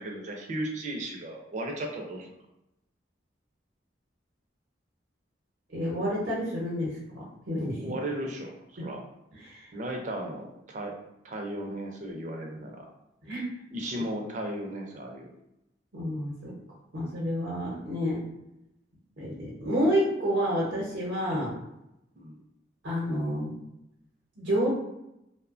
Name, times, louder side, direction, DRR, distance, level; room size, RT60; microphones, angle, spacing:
voice 1, 0.0-2.3 7.7-9.0 9.7-10.9 11.2-12.9 13.7-15.3 21.3-21.5 22.2-22.4, right 1 dB, 40° right, 2 dB, 0.4 m, -35 dB
voice 2, 5.7-7.8 8.8-8.9 9.4-9.6 13.3-13.5 15.9-16.5 16.9-18.2 19.2-21.5 22.8-23.6 24.4-24.7, equal, 90° right, -5 dB, 0.8 m, -29 dB
2.9 x 2.1 x 2.4 m, 0.85 s
head